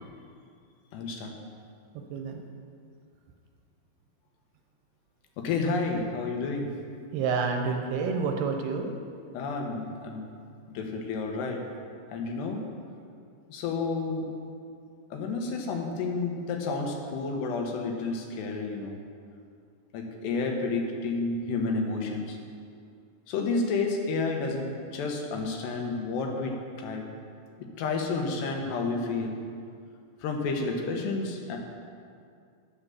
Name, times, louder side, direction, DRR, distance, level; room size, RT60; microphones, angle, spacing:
voice 1, 0.9-1.3 5.4-6.7 9.3-10.3 10.7-11.6 12.1-12.6 13.5-14.3 15.1-19.0 19.9-22.4 23.3-27.0 27.6-29.4 30.2-31.6, left 3 dB, 80° left, 2 dB, 3.4 m, -30 dB
voice 2, 2.1-2.4 7.1-8.9, right 5 dB, 80° right, 3 dB, 2.8 m, -28 dB
10.0 x 8.9 x 7.1 m, 2.3 s
omnidirectional pair, 4.8 m